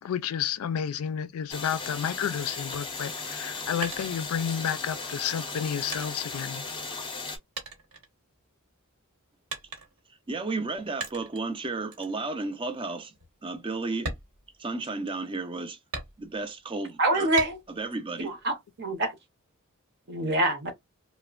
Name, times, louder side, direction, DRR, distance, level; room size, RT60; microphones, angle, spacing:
voice 1, 0.0-6.6, left 8 dB, 75° left, 0.3 m, -31 dB
sound 1, 1.5-7.4, left 4 dB, 25° left, 0.6 m, -36 dB
sound 2, 3.7-4.8 5.4-7.3 7.6-8.7 9.5-10.1 11.0-11.5 11.9-12.2 12.6-12.7 13.1-13.3 13.9-15.1 15.9-16.6 17.4-17.9 18.3-19.1, right 3 dB, 80° right, 1.1 m, -40 dB
voice 2, 10.3-13.1 13.4-14.1 14.6-15.8 16.2-17.3 17.7-18.3, right 3 dB, 25° right, 0.5 m, -33 dB
voice 3, 17.0-17.6 18.2-19.2 20.1-20.7, right 2 dB, 50° right, 0.8 m, -26 dB
3.1 x 2.1 x 2.3 m
head